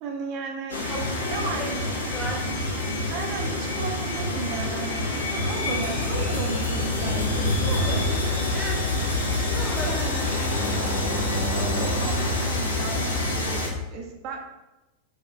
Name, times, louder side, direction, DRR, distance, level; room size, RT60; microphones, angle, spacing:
voice 1, 0.0-0.8 1.3-1.7 3.1-8.2 9.8-10.3 11.3-14.4, right 4 dB, 45° right, 1 dB, 0.6 m, -35 dB
sound 1, 0.7-13.7, left 2 dB, 75° left, 0.5 m, -26 dB
voice 2, 0.9-1.7 2.0-2.4 8.5-8.9 9.5-10.0 10.3-10.4, equal, ahead, -3 dB, 0.7 m, -35 dB
2.8 x 2.3 x 3.3 m, 1.0 s
figure-of-eight pair, 90°, 0 cm